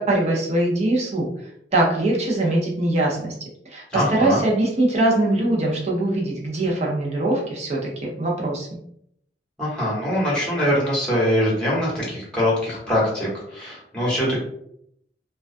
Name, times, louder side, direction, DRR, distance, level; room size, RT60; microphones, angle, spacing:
voice 1, 0.1-1.3 1.7-3.3 3.7-8.7, right 1 dB, 40° right, -2 dB, 0.5 m, -22 dB
voice 2, 3.9-4.4 9.6-14.4, equal, 5° left, -6 dB, 0.9 m, -23 dB
2.3 x 2.2 x 2.5 m, 0.73 s
head